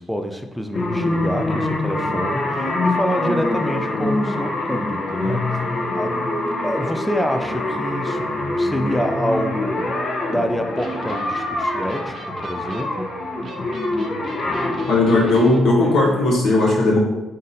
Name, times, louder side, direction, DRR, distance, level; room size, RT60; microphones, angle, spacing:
voice 1, 0.0-6.1 6.6-8.3 8.6-10.0 10.3-13.1, equal, 5° left, 5 dB, 0.4 m, -27 dB
sound 1, 0.7-16.3, left 2 dB, 45° left, 0.6 m, -25 dB
Electric guitar, 10.8-15.6, right 3 dB, 50° right, 0.6 m, -36 dB
voice 2, 14.9-17.0, left 2 dB, 75° left, -2 dB, 1.1 m, -16 dB
3.8 x 2.6 x 4.0 m, 1.1 s
cardioid pair, 90°, 0 cm